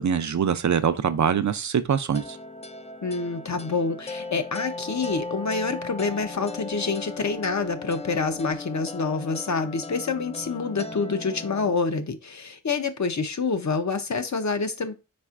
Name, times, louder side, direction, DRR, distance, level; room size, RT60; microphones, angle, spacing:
voice 1, 0.0-2.4, right 7 dB, 60° right, 0.5 m, -23 dB
sound 1, 2.1-11.8, left 3 dB, 20° left, 0.4 m, -37 dB
voice 2, 3.0-14.9, left 4 dB, 60° left, 0.7 m, -27 dB
4.2 x 4.2 x 2.4 m
wide cardioid pair, 50°, 32 cm